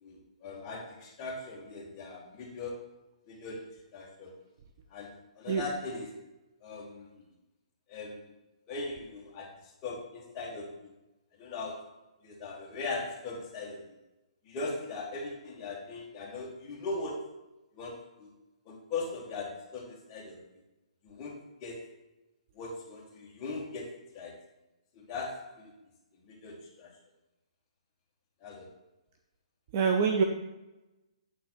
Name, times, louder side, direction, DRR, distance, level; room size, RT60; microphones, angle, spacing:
voice 1, 0.0-2.9 3.3-3.6 3.9-4.3 4.9-6.1 6.6-7.2 7.9-8.2 8.7-10.9 11.4-11.9 12.2-13.8 14.4-17.3 17.7-18.3 18.6-20.4 21.0-21.3 21.6-21.9 22.5-24.4 24.9-25.7 26.2-26.9 28.4-28.7, left 3 dB, 15° left, -2 dB, 1.1 m, -39 dB
voice 2, 29.7-30.2, right 5 dB, 20° right, 3 dB, 0.4 m, -25 dB
8.3 x 3.3 x 6.1 m, 0.99 s
hypercardioid pair, 175°, 4 cm